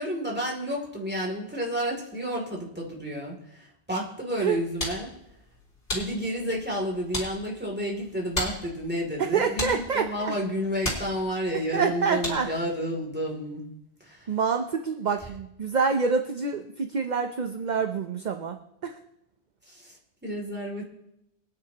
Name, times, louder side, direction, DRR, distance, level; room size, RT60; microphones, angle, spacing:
voice 1, 0.0-5.1 5.9-13.6 14.0-14.3 19.7-20.9, equal, 10° right, -1 dB, 2.8 m, -31 dB
sound 1, 4.4-12.7, left 1 dB, 60° left, 4.2 m, -37 dB
voice 2, 9.2-10.3 11.7-12.5 14.3-18.6 18.8-19.0, right 5 dB, 45° right, 5 dB, 0.8 m, -27 dB
23.5 x 9.7 x 2.9 m, 0.82 s
omnidirectional pair, 1.1 m